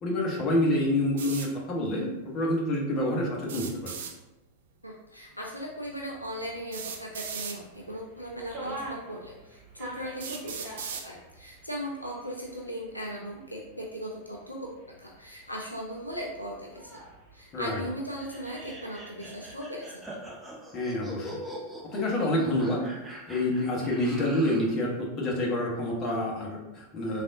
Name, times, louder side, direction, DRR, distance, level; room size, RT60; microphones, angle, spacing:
voice 1, 0.0-4.0 17.5-17.8 20.7-21.4 21.8-27.2, left 1 dB, 30° left, -3 dB, 0.9 m, -28 dB
sound 1, 1.2-1.5 3.4-4.1 5.6-5.7 6.7-7.6 8.6-8.7 9.3-9.4 10.2-11.1, right 6 dB, 60° right, 0.3 m, -37 dB
voice 2, 4.8-14.7 15.0-17.0 17.3-20.0, equal, 85° left, -2 dB, 0.4 m, -38 dB
sound 2, 5.7-19.6, right 1 dB, 45° right, 1.1 m, -47 dB
sound 3, 18.2-24.8, equal, 5° right, 0.6 m, -43 dB
3.3 x 2.4 x 2.5 m, 0.98 s
figure-of-eight pair, 90°, 0 cm